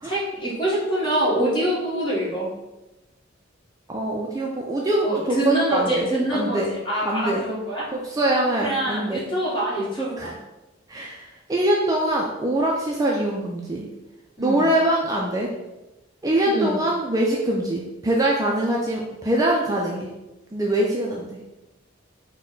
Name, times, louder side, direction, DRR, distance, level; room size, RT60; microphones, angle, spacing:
voice 1, 0.0-2.5 5.0-7.8 8.4-10.4 14.4-14.6 16.5-16.8, right 1 dB, 25° left, -7 dB, 1.4 m, -25 dB
voice 2, 3.9-6.7 7.0-7.5 8.0-9.2 10.2-10.3 10.9-13.9 14.4-15.5 16.2-20.1 20.5-21.4, right 1 dB, 20° right, -2 dB, 0.4 m, -23 dB
4.1 x 2.2 x 3.8 m, 1.0 s
head